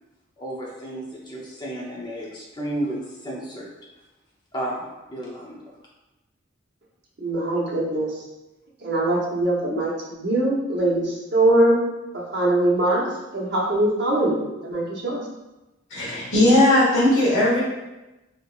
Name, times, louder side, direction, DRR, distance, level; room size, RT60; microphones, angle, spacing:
voice 1, 0.4-3.7 4.5-5.6, right 1 dB, 20° left, -4 dB, 0.7 m, -32 dB
voice 2, 7.2-8.1 8.8-11.8 12.3-13.0 13.3-15.2, right 1 dB, 60° right, -5 dB, 1.0 m, -22 dB
voice 3, 15.9-17.6, left 1 dB, 80° left, -9 dB, 1.2 m, -18 dB
3.4 x 2.9 x 2.4 m, 1.0 s
head